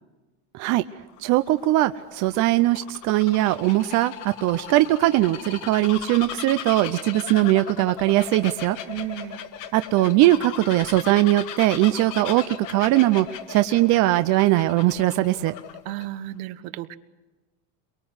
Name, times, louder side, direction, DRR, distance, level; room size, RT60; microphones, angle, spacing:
Bird vocalization bird call bird song, 1.0-16.0, left 11 dB, 50° left, 1.4 m, -37 dB
voice 1, 1.2-8.8 9.7-15.5, right 16 dB, 45° right, 11 dB, 0.7 m, -20 dB
voice 2, 8.9-9.4 15.8-17.0, right 13 dB, 70° right, 12 dB, 1.2 m, -33 dB
23.5 x 21.5 x 8.0 m, 1.2 s
cardioid pair, 150°, 40 cm